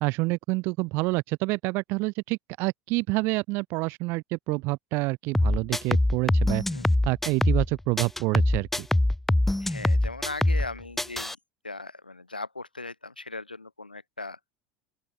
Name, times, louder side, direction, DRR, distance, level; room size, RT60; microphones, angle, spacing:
voice 1, 0.0-6.6 7.1-8.9, right 24 dB, 55° right, 1.9 m, -28 dB
sound 1, 5.3-7.7 8.0-10.7 11.0-11.3, left 1 dB, 5° left, 0.4 m, -23 dB
voice 2, 9.6-11.4 11.6-14.4, left 3 dB, 90° left, 5.3 m, -38 dB
open air
figure-of-eight pair, 75°, 5 cm